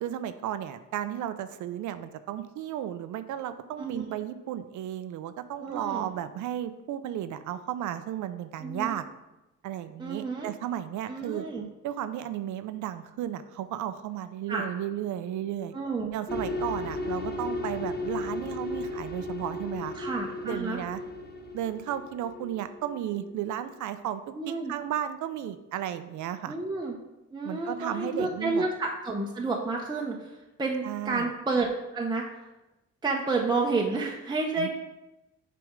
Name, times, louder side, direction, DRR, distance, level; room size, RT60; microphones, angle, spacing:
voice 1, 0.0-9.0 9.6-11.5 11.8-15.7 16.1-19.9 20.4-21.0 21.5-24.2 24.5-26.6 27.4-28.6 30.8-31.3 34.6-34.8, right 11 dB, 75° right, 11 dB, 0.5 m, -34 dB
voice 2, 5.6-6.1 8.6-9.0 10.0-10.5 11.1-11.7 14.5-14.6 15.7-16.1 19.9-20.8 24.3-24.7 26.5-26.9 27.3-30.3 30.6-32.2 33.0-34.8, right 3 dB, 15° right, -1 dB, 0.7 m, -30 dB
sound 1, 16.3-23.4, left 2 dB, 35° left, 0.8 m, -35 dB
6.2 x 3.4 x 5.0 m, 0.98 s
cardioid pair, 90°, 30 cm